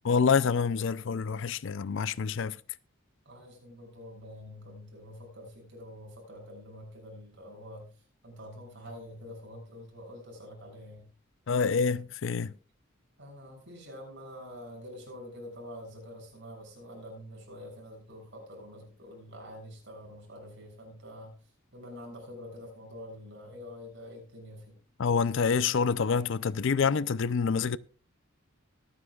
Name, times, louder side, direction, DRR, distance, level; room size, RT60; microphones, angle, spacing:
voice 1, 0.0-2.5 11.5-12.5 25.0-27.8, left 5 dB, 60° left, 0.5 m, -27 dB
voice 2, 3.2-7.9 8.2-11.0 13.2-21.3 21.7-24.7, left 1 dB, 60° right, 6.4 m, -46 dB
24.5 x 9.6 x 2.4 m
head